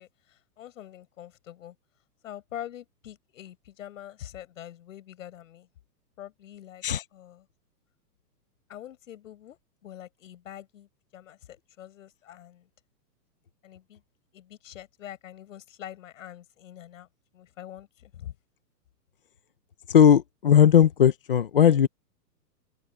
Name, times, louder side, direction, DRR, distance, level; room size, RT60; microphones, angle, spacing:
voice 1, 0.0-1.8 2.2-5.7 6.2-6.8 7.1-7.4 8.7-12.7 13.6-14.0 14.3-17.1 17.3-18.3, left 11 dB, 50° left, 7.9 m, -44 dB
voice 2, 19.9-21.9, left 9 dB, 35° left, 0.6 m, -18 dB
open air
hypercardioid pair, 175°, 49 cm